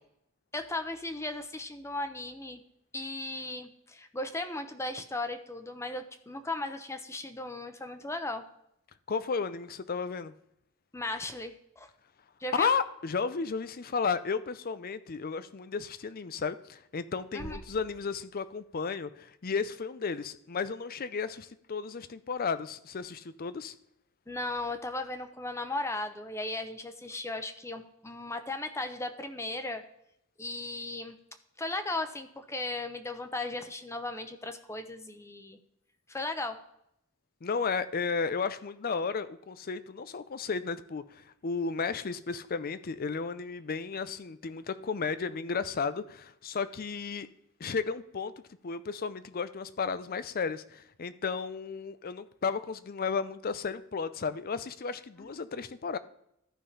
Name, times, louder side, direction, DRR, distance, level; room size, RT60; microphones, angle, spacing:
voice 1, 0.5-2.6 2.9-8.4 10.9-11.9 12.4-12.7 17.3-17.6 24.3-29.8 30.4-31.2 31.6-35.6 36.1-36.6 55.2-55.3, left 2 dB, 15° left, 8 dB, 0.8 m, -36 dB
voice 2, 9.1-10.3 12.5-23.7 37.4-47.3 47.6-48.3 48.6-56.0, left 5 dB, 45° left, 14 dB, 0.5 m, -33 dB
Bass drum, 17.4-19.1, right 2 dB, 45° right, 0.7 m, -49 dB
13.5 x 5.6 x 3.3 m, 0.76 s
head